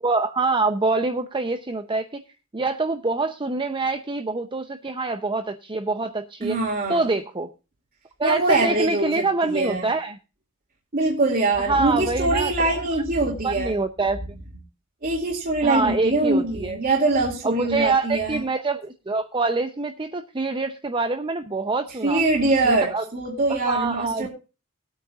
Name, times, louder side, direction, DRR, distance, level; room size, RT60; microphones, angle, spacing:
voice 1, 0.0-2.2 2.5-6.6 6.9-7.5 8.2-10.2 11.7-12.5 13.4-14.2 15.6-16.8 17.4-22.2 22.6-23.1 23.7-24.3, right 3 dB, 20° right, 7 dB, 0.7 m, -25 dB
voice 2, 6.4-7.1 8.2-9.9 10.9-13.7 15.0-18.4 22.0-24.3, right 2 dB, 40° right, -3 dB, 2.3 m, -23 dB
19.5 x 8.8 x 2.4 m, 0.31 s
head